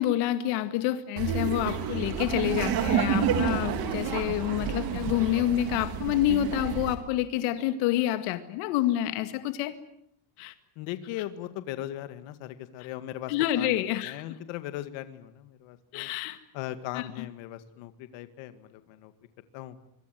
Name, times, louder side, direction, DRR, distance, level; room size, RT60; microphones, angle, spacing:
voice 1, 0.0-9.7 10.4-10.5 13.3-14.4 15.9-16.4 16.9-17.3, left 13 dB, 90° left, 10 dB, 2.1 m, -28 dB
Laughter, 1.2-6.9, right 7 dB, 45° right, 3.6 m, -29 dB
voice 2, 10.8-13.7 14.0-16.1 16.5-19.1 19.5-19.8, left 13 dB, 65° left, 10 dB, 2.3 m, -38 dB
25.5 x 24.0 x 9.3 m, 0.73 s
cardioid pair, 170°, 49 cm